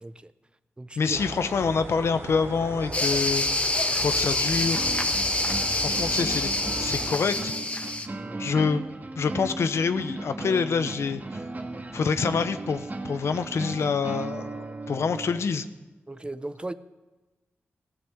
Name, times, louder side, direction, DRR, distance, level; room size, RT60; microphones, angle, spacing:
voice 1, 0.0-0.3 0.8-1.2 8.2-8.4 16.1-16.7, right 2 dB, 20° right, 13 dB, 0.8 m, -37 dB
voice 2, 1.0-3.4 3.9-4.9 5.7-6.5 6.8-7.5 8.4-8.9 9.2-11.2 11.9-15.7, left 5 dB, 80° left, 10 dB, 0.9 m, -26 dB
sound 1, 1.1-7.1, right 2 dB, 85° right, 3.1 m, -37 dB
sound 2, 2.9-8.1, left 2 dB, 25° left, 1.7 m, -26 dB
sound 3, 4.6-15.4, right 2 dB, 40° right, 1.8 m, -36 dB
16.5 x 12.0 x 7.4 m, 1.1 s
cardioid pair, 60°, 5 cm